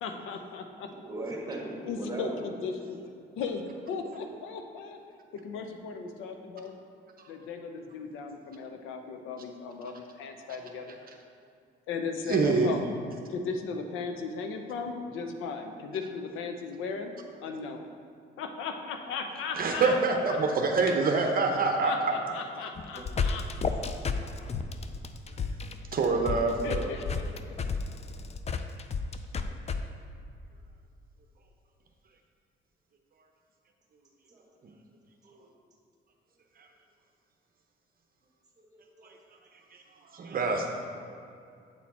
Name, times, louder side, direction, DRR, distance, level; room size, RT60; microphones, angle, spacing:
voice 1, 0.0-0.9 1.8-3.0 3.3-5.0 5.3-6.7 7.3-11.0 11.9-12.9 13.3-17.1 17.4-17.9 18.4-20.0 20.3-20.4 21.2-23.5 26.3-26.4 26.6-27.3, left 5 dB, 90° left, 5 dB, 0.6 m, -37 dB
voice 2, 0.9-2.4 20.4-21.2 21.6-21.7 22.9-23.0 34.3-34.4 35.2-35.5 38.6-39.2, right 2 dB, 20° right, -2 dB, 1.8 m, -40 dB
voice 3, 12.2-12.8 19.6-22.3 25.3-25.4 25.9-26.9 36.6-36.7 39.0-39.1 39.7-39.8 40.1-40.7, right 4 dB, 45° right, 2 dB, 0.7 m, -26 dB
sound 1, 22.8-29.8, left 5 dB, 35° left, 0.4 m, -31 dB
8.3 x 4.2 x 4.2 m, 2.4 s
cardioid pair, 90°, 20 cm